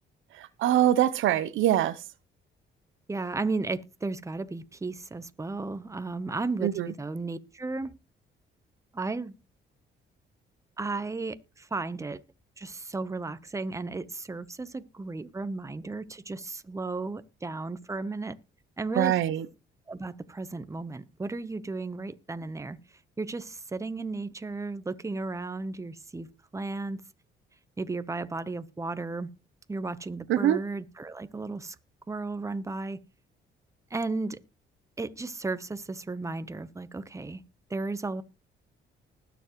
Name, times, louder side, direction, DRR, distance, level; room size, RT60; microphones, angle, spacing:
voice 1, 0.3-2.0 6.6-6.9 19.0-19.5 30.3-30.6, right 12 dB, 80° right, 0.8 m, -24 dB
voice 2, 3.1-7.9 8.9-9.3 10.8-12.2 12.6-18.4 18.8-19.2 19.9-22.8 23.2-26.3 26.5-27.0 27.8-29.3 29.7-31.8 32.1-33.0 33.9-34.4 35.0-37.4 37.7-38.2, right 3 dB, 15° right, 0.9 m, -34 dB
20.0 x 7.1 x 3.1 m
cardioid pair, 90°, 20 cm